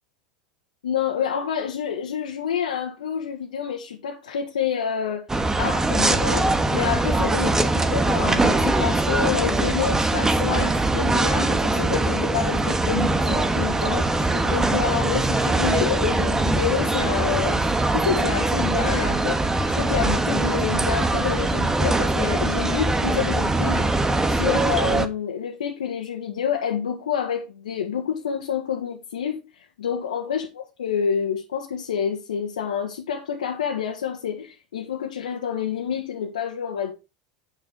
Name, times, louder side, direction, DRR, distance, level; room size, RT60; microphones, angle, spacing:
voice 1, 0.8-5.2 5.6-19.4 19.7-36.9, left 8 dB, 85° left, 1.7 m, -28 dB
sound 1, 5.3-25.1, right 2 dB, 15° right, 1.5 m, -22 dB
9.6 x 6.5 x 4.8 m
hypercardioid pair, 90°, 4 cm